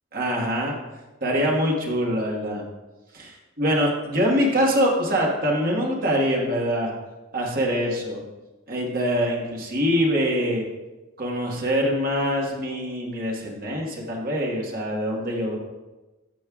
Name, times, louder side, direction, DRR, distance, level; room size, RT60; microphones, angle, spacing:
voice 1, 0.1-0.8 1.2-2.6 3.1-6.9 7.3-8.2 8.7-10.6 11.2-15.6, equal, 45° right, -1 dB, 1.5 m, -24 dB
13.5 x 5.3 x 2.4 m, 1.1 s
head